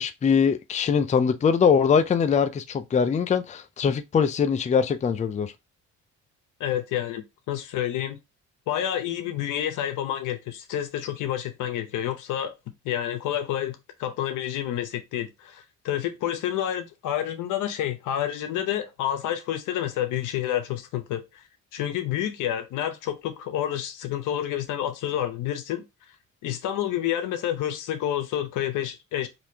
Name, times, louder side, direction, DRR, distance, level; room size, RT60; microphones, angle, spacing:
voice 1, 0.0-5.5, left 6 dB, 25° left, 0.4 m, -22 dB
voice 2, 6.6-8.2 8.7-12.5 12.8-21.2 21.7-25.8 26.4-29.3, left 11 dB, 85° left, 0.8 m, -29 dB
4.2 x 2.7 x 2.7 m
cardioid pair, 90°, 30 cm